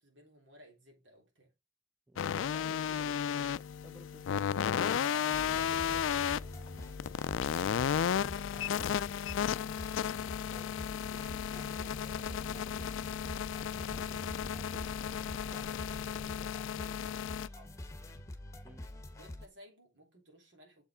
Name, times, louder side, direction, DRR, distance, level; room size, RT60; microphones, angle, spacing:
voice 1, 0.0-1.5 5.0-6.5 7.2-9.9 10.6-12.9 13.5-17.8 19.1-20.8, right 1 dB, 75° right, 3.5 m, -59 dB
voice 2, 2.1-6.1 10.5-10.7 18.6-18.9, equal, 10° right, 0.6 m, -56 dB
sound 1, 2.2-17.5, left 8 dB, 90° left, 0.3 m, -34 dB
sound 2, 5.3-19.5, left 1 dB, 15° left, 1.1 m, -46 dB
sound 3, 11.1-16.4, equal, 60° right, 1.0 m, -51 dB
7.2 x 5.5 x 4.9 m
head